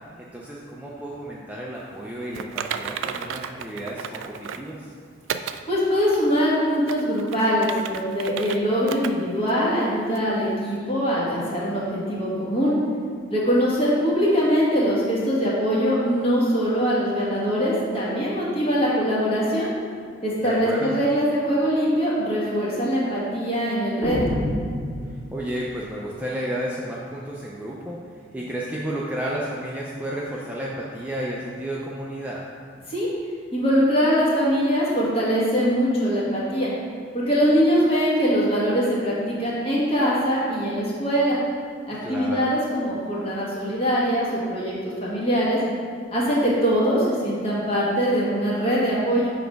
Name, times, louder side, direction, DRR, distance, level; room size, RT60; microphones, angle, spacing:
voice 1, 0.2-4.9 20.4-21.0 25.1-32.4 42.0-42.5, right 1 dB, 10° right, -5 dB, 0.4 m, -32 dB
Typing, 2.3-4.7 5.3-5.6 6.1-6.2 6.7-8.6 8.9-9.1 9.5-9.6 10.1-10.2, right 8 dB, 80° right, 0.3 m, -33 dB
voice 2, 5.7-12.7 13.3-19.7 20.2-24.4 32.9-33.1 33.5-36.7 37.1-41.4 41.9-45.6 46.1-49.3, equal, 30° left, -6 dB, 1.5 m, -22 dB
sound 1, 24.0-25.6, equal, 10° left, 1.5 m, -28 dB
7.0 x 3.4 x 5.2 m, 2.1 s
head